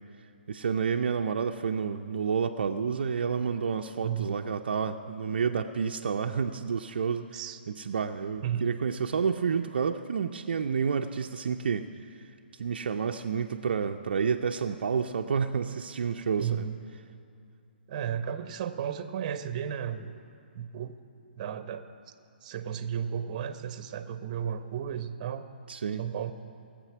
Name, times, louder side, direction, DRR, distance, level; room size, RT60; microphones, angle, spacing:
voice 1, 0.5-7.4 7.7-11.9 12.6-16.7 25.7-26.1, right 6 dB, 65° right, 4 dB, 0.6 m, -29 dB
voice 2, 4.0-4.4 7.3-7.6 8.4-8.6 16.4-16.7 17.9-20.2 20.5-21.0 21.4-21.9 22.4-25.5 26.0-26.3, right 8 dB, 40° right, 10 dB, 0.9 m, -34 dB
20.0 x 7.5 x 6.0 m, 2.6 s
figure-of-eight pair, 140°, 6 cm